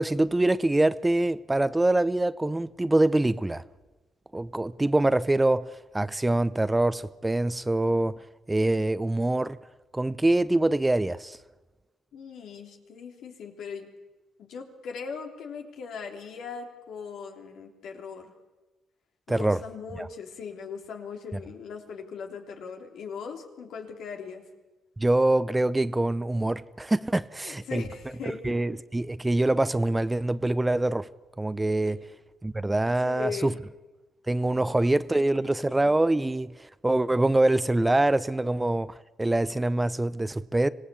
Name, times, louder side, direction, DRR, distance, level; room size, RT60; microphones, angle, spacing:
voice 1, 0.0-3.6 4.3-8.2 8.5-9.6 9.9-11.4 19.3-19.6 20.0-20.1 25.0-27.8 28.4-31.1 31.4-32.0 32.4-33.5 34.3-36.5 36.8-40.7, right 2 dB, 15° right, 0.6 m, -24 dB
voice 2, 12.1-13.9 14.4-18.3 19.3-24.4 27.4-28.6 31.8-31.9 33.0-33.6 34.6-34.7 35.7-35.8, left 5 dB, 75° left, 3.3 m, -39 dB
25.5 x 17.0 x 8.5 m
cardioid pair, 90°, 0 cm